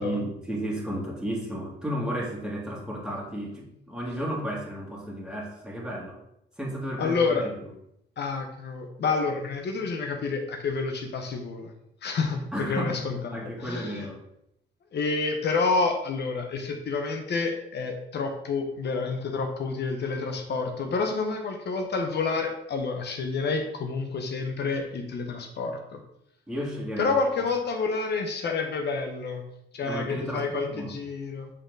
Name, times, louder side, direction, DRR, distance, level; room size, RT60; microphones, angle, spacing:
voice 1, 0.0-6.2 6.6-7.5 12.5-14.2 26.5-27.1 29.8-30.9, equal, 5° right, -3 dB, 2.1 m, -33 dB
voice 2, 7.0-7.4 8.2-11.7 12.0-14.1 14.9-26.0 27.0-29.4 29.7-31.5, left 4 dB, 60° left, 4 dB, 1.0 m, -29 dB
7.7 x 4.1 x 3.8 m, 0.79 s
cardioid pair, 90°, 20 cm